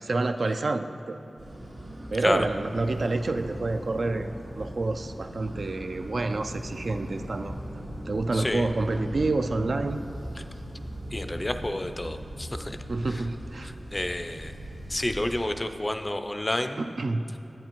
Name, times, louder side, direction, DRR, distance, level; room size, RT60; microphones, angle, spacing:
voice 1, 0.0-1.2 2.1-4.3 4.5-7.5 8.1-10.0 12.9-13.7 16.8-17.2, right 2 dB, 65° right, 7 dB, 0.3 m, -28 dB
sound 1, 1.4-15.4, equal, 85° right, 1.9 m, -39 dB
voice 2, 8.3-8.7 10.4-10.5 11.1-12.8 13.1-13.2 13.6-14.5 14.9-16.8, left 1 dB, 25° left, 8 dB, 0.4 m, -30 dB
11.0 x 8.3 x 3.0 m, 2.9 s
wide cardioid pair, 70°, 0 cm